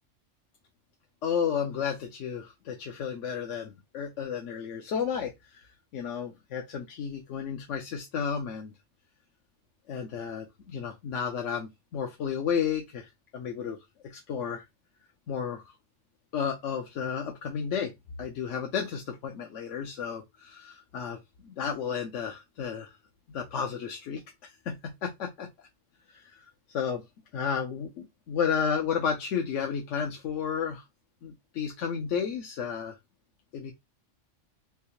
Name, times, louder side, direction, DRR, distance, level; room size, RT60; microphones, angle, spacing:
voice 1, 1.2-8.7 9.9-13.8 14.0-14.6 15.3-15.6 16.3-17.9 18.2-23.0 23.3-25.5 26.1-26.5 26.7-27.0 27.3-30.8 31.2-33.0 33.5-33.7, left 7 dB, 80° left, 1.0 m, -32 dB
3.5 x 2.7 x 2.8 m
omnidirectional pair, 1.3 m